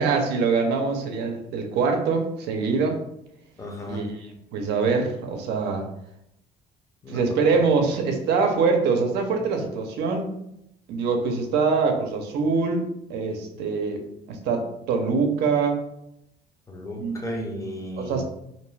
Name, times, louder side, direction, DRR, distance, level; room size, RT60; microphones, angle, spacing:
voice 1, 0.0-3.0 3.9-5.9 7.1-10.4 10.9-12.8 13.1-15.8 17.0-17.2 18.0-18.2, right 4 dB, 80° right, 3 dB, 0.5 m, -24 dB
voice 2, 3.6-4.0 7.0-7.4 16.7-18.2, left 1 dB, 20° left, 1 dB, 0.6 m, -34 dB
2.6 x 2.2 x 3.2 m, 0.81 s
cardioid pair, 110°, 17 cm